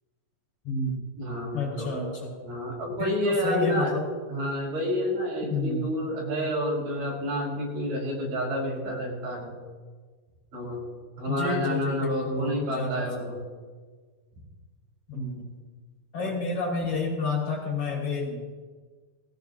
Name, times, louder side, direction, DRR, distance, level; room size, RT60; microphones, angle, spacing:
voice 1, 0.6-1.0 1.5-2.1 3.0-4.0 5.5-5.8 11.3-13.4 15.1-15.5 16.1-18.4, left 3 dB, 50° left, -4 dB, 6.2 m, -30 dB
voice 2, 1.2-1.9 2.4-3.9 4.3-9.6 10.5-10.8 11.2-13.4, equal, 60° right, -3 dB, 6.3 m, -29 dB
19.5 x 17.0 x 2.8 m, 1.5 s
omnidirectional pair, 4.3 m